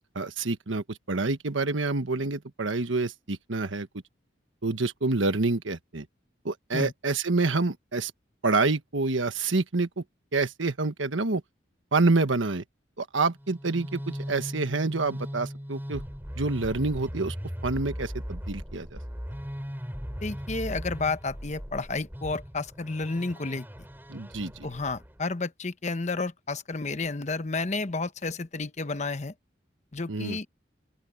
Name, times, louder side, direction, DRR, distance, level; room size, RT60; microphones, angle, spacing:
voice 1, 0.1-3.9 4.6-6.0 6.4-8.1 8.4-10.0 10.3-11.4 11.9-12.6 13.0-16.0 16.4-17.3 17.6-19.0 24.1-24.5 30.1-30.4, right 3 dB, 85° right, 1.3 m, -27 dB
sound 1, 13.3-25.2, equal, 10° right, 5.9 m, -38 dB
voice 2, 20.2-23.7 24.6-29.3 29.9-30.5, left 3 dB, 40° left, 0.9 m, -31 dB
open air
head